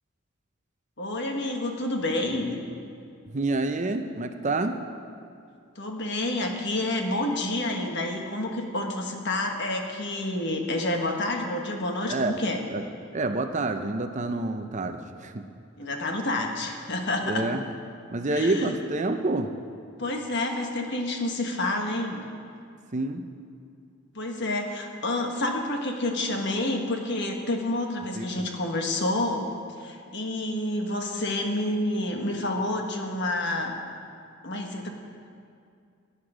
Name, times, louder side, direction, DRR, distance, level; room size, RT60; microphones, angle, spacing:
voice 1, 1.0-2.6 5.7-12.6 15.8-17.5 18.3-18.7 20.0-22.2 24.1-29.5 29.8-33.8 34.4-34.9, left 1 dB, 55° left, 3 dB, 1.4 m, -29 dB
voice 2, 3.3-4.8 12.1-12.4 12.7-12.8 13.1-15.5 17.3-17.6 18.1-19.5 22.9-23.2 28.1-28.5, right 2 dB, 35° right, 7 dB, 0.6 m, -28 dB
17.0 x 9.7 x 5.0 m, 2.4 s
head